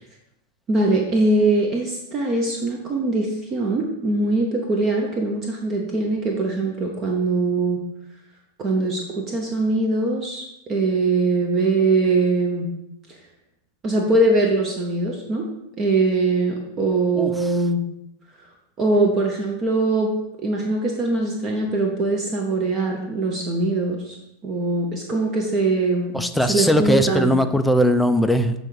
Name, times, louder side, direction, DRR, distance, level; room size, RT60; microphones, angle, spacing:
voice 1, 0.7-7.8 8.6-12.7 13.8-15.4 15.8-17.8 18.8-20.1 20.4-24.2 24.4-26.2 26.5-27.3, right 2 dB, 30° right, 1 dB, 0.9 m, -22 dB
voice 2, 17.1-17.5 26.1-28.5, equal, ahead, 7 dB, 0.5 m, -19 dB
7.6 x 3.9 x 4.8 m, 0.85 s
figure-of-eight pair, 90°, 0 cm